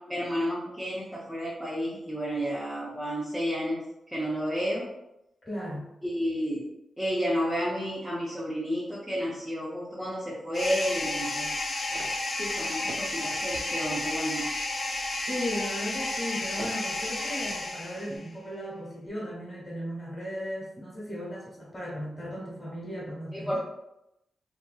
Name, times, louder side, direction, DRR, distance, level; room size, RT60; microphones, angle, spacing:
voice 1, 0.1-3.8 4.1-4.9 6.0-6.7 7.0-11.5 12.4-14.5 23.3-23.6, equal, 5° right, -8 dB, 0.6 m, -31 dB
voice 2, 5.4-5.9 15.3-23.6, equal, 20° left, -5 dB, 1.2 m, -36 dB
sound 1, 10.5-18.3, left 2 dB, 40° left, 0.5 m, -32 dB
sound 2, 11.5-17.7, right 3 dB, 85° right, 0.3 m, -44 dB
2.8 x 2.6 x 2.3 m, 0.87 s
wide cardioid pair, 140°, 0 cm